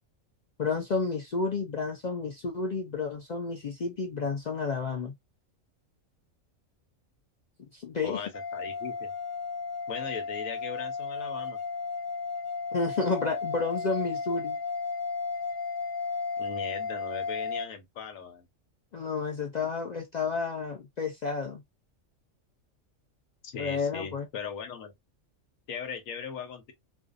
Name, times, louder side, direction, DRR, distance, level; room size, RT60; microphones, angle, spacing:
voice 1, 0.6-5.1 7.7-8.2 12.7-14.6 18.9-21.6 23.6-24.3, left 4 dB, 70° left, 0.4 m, -31 dB
voice 2, 8.0-9.1 9.9-11.6 16.4-18.5 23.4-24.9 25.7-26.7, left 6 dB, 90° left, 1.1 m, -38 dB
sound 1, 8.3-17.7, left 4 dB, 40° left, 1.0 m, -34 dB
2.5 x 2.3 x 2.4 m
omnidirectional pair, 1.4 m